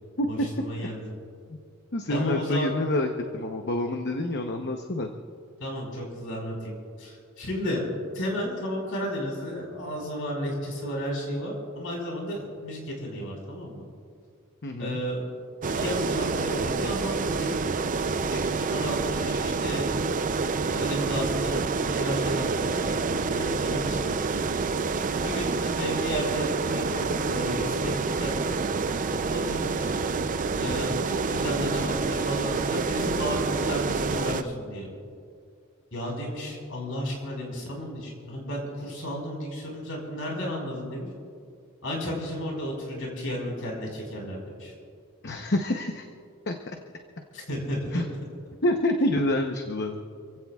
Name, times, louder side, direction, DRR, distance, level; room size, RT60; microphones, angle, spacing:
voice 1, 0.3-1.0 2.1-2.7 5.6-7.8 8.1-13.9 14.8-15.2 15.7-17.5 18.3-20.2 20.7-24.4 25.2-28.5 29.3-29.9 30.6-34.9 35.9-41.1 41.8-44.7 47.3-48.0, equal, 65° left, -1 dB, 4.9 m, -33 dB
voice 2, 1.9-5.1 14.6-15.0 45.2-46.0 46.5-46.6 47.9-48.1 48.6-50.0, left 1 dB, 50° left, 4 dB, 0.9 m, -27 dB
sound 1, 15.6-34.4, right 4 dB, 35° right, 0.5 m, -27 dB
28.5 x 16.0 x 2.4 m, 2.2 s
head